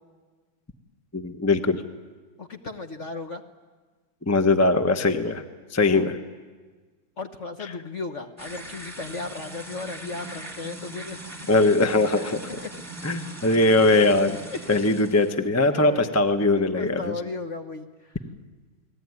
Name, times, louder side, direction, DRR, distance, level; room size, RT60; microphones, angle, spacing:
voice 1, 1.1-1.8 4.3-5.4 5.7-6.2 11.5-12.4 13.0-14.4 14.7-17.1, left 2 dB, 10° left, 7 dB, 0.8 m, -21 dB
voice 2, 2.4-3.4 5.8-6.1 7.2-11.2 12.1-12.3 14.5-15.0 15.7-16.2 16.6-18.1, left 3 dB, 40° left, 5 dB, 1.2 m, -36 dB
sound 1, 8.4-15.4, right 2 dB, 10° right, 1.7 m, -40 dB
29.5 x 20.0 x 9.7 m, 1.4 s
omnidirectional pair, 2.3 m